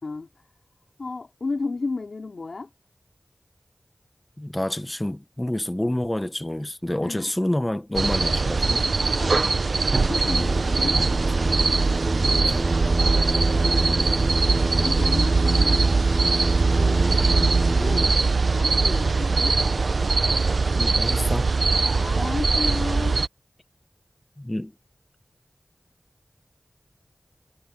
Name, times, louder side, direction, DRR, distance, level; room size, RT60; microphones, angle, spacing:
voice 1, 0.0-0.5 1.0-2.7 7.0-7.3 9.2-9.4 9.9-11.0 13.0-14.1 14.4-16.0 16.3-19.6 21.9-23.2, left 3 dB, 85° left, 3.3 m, -33 dB
voice 2, 4.4-8.8 10.9-11.0 12.2-12.6 20.7-21.5 24.4-24.7, left 1 dB, 20° left, 1.0 m, -28 dB
sound 1, 7.9-23.3, right 4 dB, 80° right, 0.5 m, -21 dB
Singing, 10.2-18.1, right 1 dB, 25° right, 1.1 m, -29 dB
wide cardioid pair, 55°, 0 cm